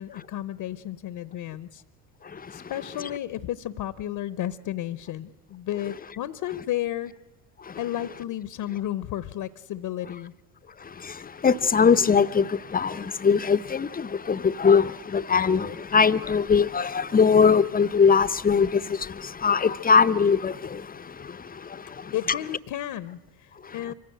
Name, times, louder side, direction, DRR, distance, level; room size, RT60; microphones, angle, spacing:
voice 1, 0.0-1.8 2.5-7.1 7.8-10.3 22.1-23.9, left 12 dB, 50° left, 0.9 m, -33 dB
voice 2, 11.4-12.4 12.7-13.0 13.2-14.9 15.1-18.7 19.4-20.5, left 6 dB, 20° left, 0.7 m, -20 dB
25.0 x 16.0 x 9.0 m
hypercardioid pair, 65°, 46 cm